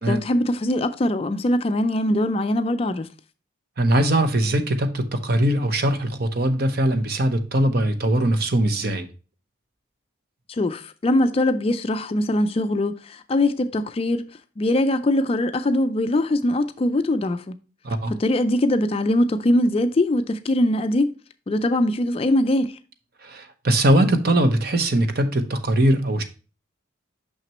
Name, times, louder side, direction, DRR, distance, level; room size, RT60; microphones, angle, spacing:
voice 1, 0.1-3.1 10.5-14.3 14.6-17.5 18.1-21.1 21.5-22.8, left 1 dB, 30° left, 0.3 m, -22 dB
voice 2, 3.8-9.1 17.8-18.1 23.2-26.2, right 1 dB, 50° right, 0.8 m, -21 dB
6.1 x 5.8 x 2.9 m
head